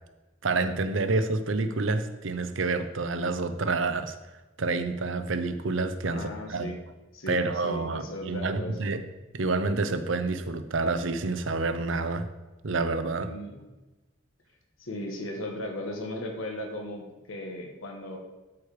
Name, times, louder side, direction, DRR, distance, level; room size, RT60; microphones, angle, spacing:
voice 1, 0.4-4.2 4.6-6.7 7.3-9.1 9.3-12.3 12.6-13.3, right 3 dB, 65° right, 10 dB, 0.7 m, -28 dB
voice 2, 6.0-6.8 7.1-8.9 13.2-13.7 14.8-18.2, left 1 dB, 75° left, 2 dB, 1.4 m, -37 dB
13.0 x 4.7 x 4.9 m, 1.1 s
head